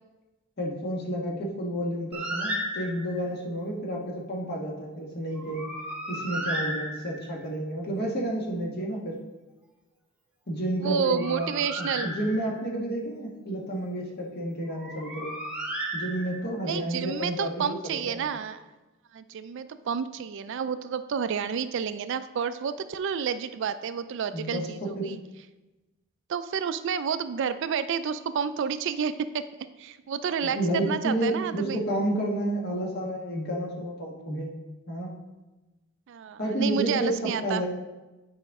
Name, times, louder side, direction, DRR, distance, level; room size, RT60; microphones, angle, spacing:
voice 1, 0.6-5.7 6.1-9.2 10.5-11.5 11.8-15.3 15.9-18.3 24.3-25.1 30.4-34.5 34.9-35.1 36.4-37.7, right 1 dB, 50° left, -2 dB, 1.5 m, -30 dB
Bird, 2.1-3.3 5.3-7.4 10.9-12.7 14.7-16.6, equal, 5° right, 1.1 m, -34 dB
voice 2, 10.8-12.1 16.6-18.6 19.1-25.2 26.3-29.5 29.8-31.8 36.1-37.6, right 7 dB, 60° right, 12 dB, 0.3 m, -30 dB
8.9 x 5.0 x 3.6 m, 1.1 s
head